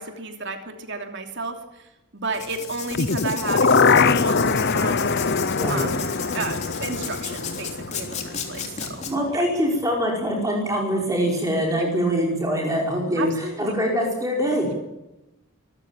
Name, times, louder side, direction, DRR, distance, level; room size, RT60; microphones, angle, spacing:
voice 1, 0.0-1.6 2.1-5.1 5.7-6.0 6.3-9.0 9.3-9.4 11.8-11.9 13.2-13.7, right 3 dB, 60° right, 5 dB, 3.1 m, -32 dB
Writing, 2.3-9.1, left 7 dB, 35° left, 3.5 m, -34 dB
sound 1, 2.9-8.9 9.3-9.4, left 4 dB, 55° left, 0.8 m, -22 dB
voice 2, 5.6-5.9 9.1-14.7, equal, 15° right, -1 dB, 5.1 m, -24 dB
24.5 x 14.5 x 9.0 m, 0.95 s
head